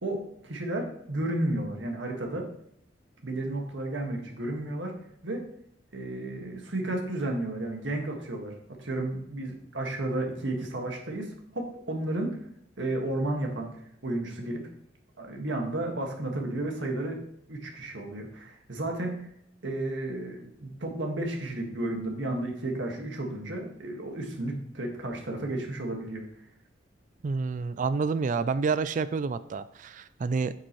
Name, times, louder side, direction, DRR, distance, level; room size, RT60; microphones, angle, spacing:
voice 1, 0.0-2.5 3.2-5.0 5.2-5.5 5.9-12.4 12.8-14.7 15.2-17.2 17.5-19.2 19.6-26.3, right 1 dB, 70° right, 2 dB, 1.7 m, -32 dB
voice 2, 27.2-30.5, right 4 dB, 45° right, 14 dB, 0.3 m, -28 dB
8.7 x 6.9 x 3.1 m, 0.70 s
head